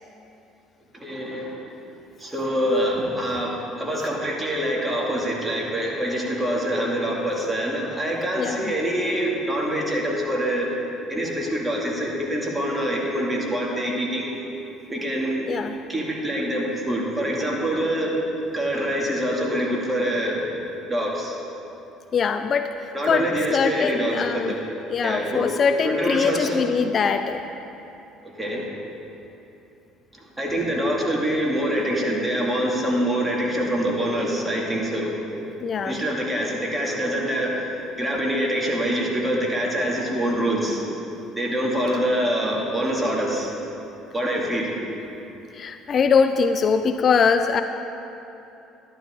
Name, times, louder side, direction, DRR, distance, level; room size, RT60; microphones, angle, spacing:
voice 1, 0.9-1.6 2.2-10.7 11.1-14.3 14.9-15.5 15.9-18.1 18.5-20.4 20.9-21.4 22.9-24.6 25.0-25.5 25.8-26.6 28.4-28.7 30.4-35.1 35.8-37.7 38.0-40.8 41.4-43.5 44.1-44.7, equal, 15° right, -2 dB, 2.5 m, -25 dB
voice 2, 8.4-8.7 15.5-15.8 22.1-23.3 23.5-24.6 24.9-27.4 35.6-36.0 45.5-47.6, left 6 dB, 45° left, 8 dB, 0.5 m, -22 dB
12.5 x 11.0 x 3.8 m, 2.9 s
supercardioid pair, 80°, 0 cm